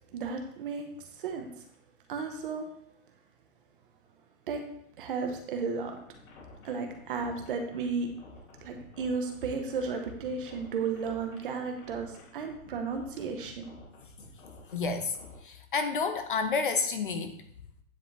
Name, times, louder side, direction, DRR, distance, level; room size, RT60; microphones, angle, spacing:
voice 1, 0.1-1.6 2.1-2.7 4.5-4.6 5.0-6.0 6.6-8.1 8.6-13.7, right 5 dB, 35° right, 4 dB, 1.3 m, -34 dB
sound 1, 6.1-15.4, left 3 dB, 70° left, 3.1 m, -51 dB
voice 2, 14.7-15.1 15.4-17.3, left 4 dB, 35° left, 7 dB, 0.7 m, -29 dB
10.0 x 7.8 x 3.4 m, 0.71 s
hypercardioid pair, 180°, 44 cm